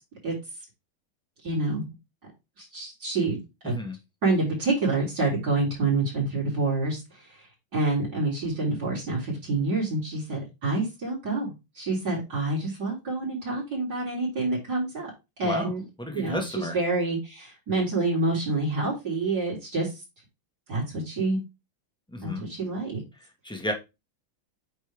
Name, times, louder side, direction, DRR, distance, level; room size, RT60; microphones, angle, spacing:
voice 1, 1.4-1.8 2.6-3.4 3.6-3.8 4.2-7.5 7.7-15.1 15.4-15.8 16.1-20.0 20.7-21.4 22.2-23.0, right 3 dB, 50° right, -6 dB, 4.4 m, -27 dB
voice 2, 3.6-3.9 15.4-15.7 16.0-16.8 22.1-22.5 23.4-23.7, left 1 dB, ahead, 3 dB, 1.6 m, -32 dB
9.0 x 5.6 x 3.6 m, 0.25 s
omnidirectional pair, 2.3 m